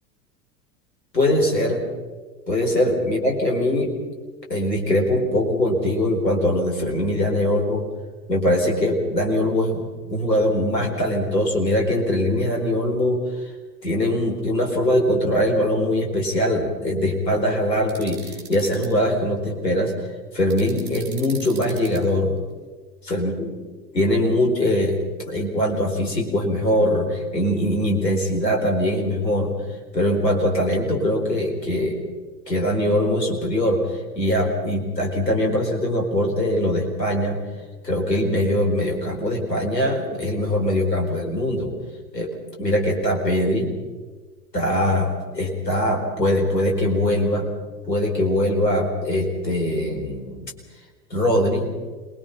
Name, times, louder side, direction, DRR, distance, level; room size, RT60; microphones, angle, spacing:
voice 1, 1.1-1.8 2.5-3.9 4.5-7.8 8.3-13.5 13.8-19.9 20.3-22.4 23.1-23.5 23.9-29.5 29.9-32.0 32.5-33.8 34.1-37.4 37.8-41.7 42.1-42.3 42.6-43.7 44.5-47.5 47.9-50.5 51.1-51.7, left 1 dB, 80° left, 2 dB, 4.6 m, -22 dB
sound 1, 17.9-18.9 20.5-22.0, right 6 dB, 20° right, 7.2 m, -40 dB
26.5 x 21.5 x 5.7 m, 1.3 s
figure-of-eight pair, 85°, 49 cm